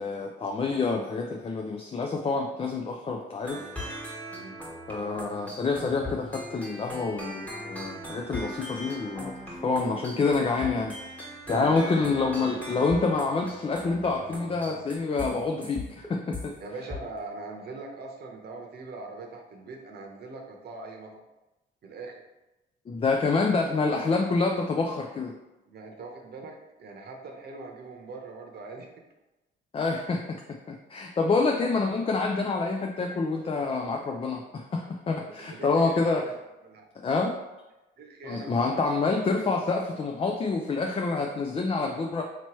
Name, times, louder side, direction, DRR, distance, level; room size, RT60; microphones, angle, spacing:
voice 1, 0.0-3.6 4.9-10.9 11.5-16.5 22.9-25.3 29.7-30.4 30.7-36.2 37.0-37.4 38.3-42.2, left 3 dB, 30° left, 2 dB, 0.4 m, -27 dB
sound 1, 3.4-16.5 16.9-17.2, equal, 5° left, 1.3 m, -39 dB
voice 2, 16.6-21.2 21.8-22.2 25.7-28.9 35.1-36.3 36.6-36.9 38.0-39.0, right 3 dB, 55° right, 2 dB, 0.8 m, -42 dB
4.4 x 2.9 x 3.0 m, 1.0 s
cardioid pair, 90°, 20 cm